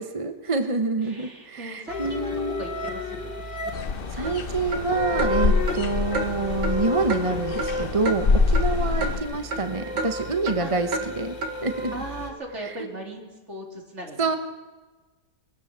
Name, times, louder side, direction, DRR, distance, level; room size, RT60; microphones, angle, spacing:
voice 1, 0.0-2.6 4.1-11.4 11.6-11.9 12.6-12.8 14.2-14.4, right 3 dB, 25° right, 7 dB, 0.8 m, -27 dB
voice 2, 1.0-3.3 8.8-9.3 10.6-10.7 11.9-14.4, right 1 dB, 40° right, 1 dB, 3.7 m, -38 dB
sound 1, 1.9-12.3, left 2 dB, 85° left, 3.7 m, -32 dB
sound 2, 3.7-9.2, left 4 dB, 40° left, 0.9 m, -26 dB
sound 3, 4.2-4.4 4.7-4.8 5.2-5.3 5.7-5.8 6.1-6.2 6.6-6.8 7.1-7.2 7.6-7.8 8.1-8.2 8.5-8.7 9.0-9.1 9.5-9.6 10.0-10.1 10.5-10.6 10.9-11.1 11.4-11.5, right 3 dB, 80° right, 2.4 m, -29 dB
22.5 x 16.5 x 7.4 m, 1.3 s
omnidirectional pair, 1.9 m